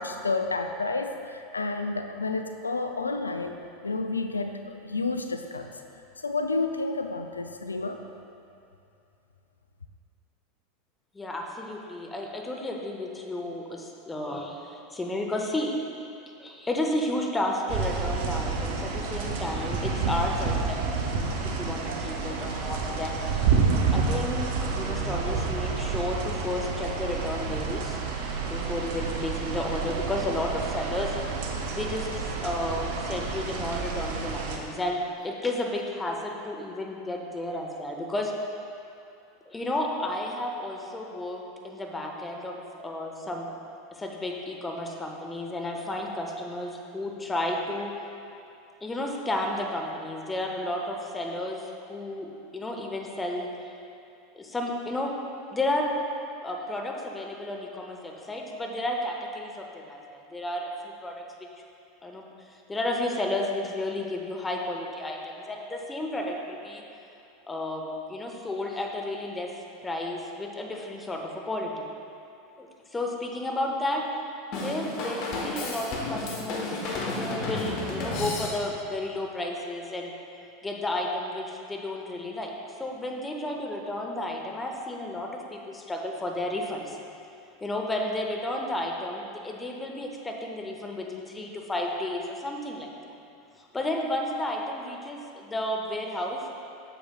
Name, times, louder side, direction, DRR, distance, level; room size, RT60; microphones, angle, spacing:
voice 1, 0.0-3.6 3.8-5.7 6.2-8.0, left 3 dB, 85° left, 6 dB, 0.3 m, -30 dB
voice 2, 11.1-15.7 16.4-23.7 23.9-28.0 28.5-31.1 31.7-32.1 32.4-38.3 39.5-42.6 42.8-43.5 43.9-47.9 48.8-51.6 51.9-53.7 54.3-55.1 55.5-55.9 56.4-60.0 60.3-61.2 62.0-62.3 62.7-66.8 67.5-67.8 68.1-69.5 69.8-71.8 72.6-74.0 74.6-76.7 77.1-80.1 80.6-82.5 82.8-87.0 87.6-92.9 93.7-96.4, left 1 dB, 15° left, 1 dB, 0.9 m, -32 dB
sound 1, 17.7-34.6, right 5 dB, 60° right, 0.7 m, -29 dB
Drum kit / Drum, 74.5-78.9, left 2 dB, 50° left, 1.1 m, -32 dB
8.9 x 6.9 x 2.3 m, 2.6 s
figure-of-eight pair, 85°, 0 cm